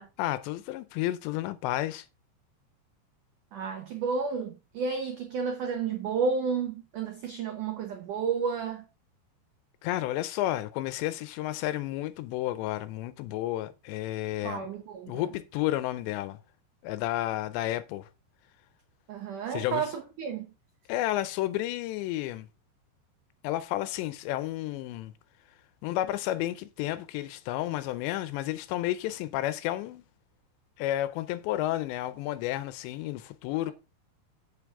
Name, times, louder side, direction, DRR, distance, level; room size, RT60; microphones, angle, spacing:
voice 1, 0.2-2.1 9.8-14.7 15.1-16.4 16.8-18.1 19.5-19.9 20.9-22.5 23.4-25.1 25.8-30.0 30.8-33.7, left 14 dB, 80° left, 2.8 m, -31 dB
voice 2, 3.5-8.8 14.4-15.2 19.1-20.5, right 5 dB, 90° right, 1.7 m, -31 dB
8.0 x 7.6 x 3.6 m
omnidirectional pair, 5.3 m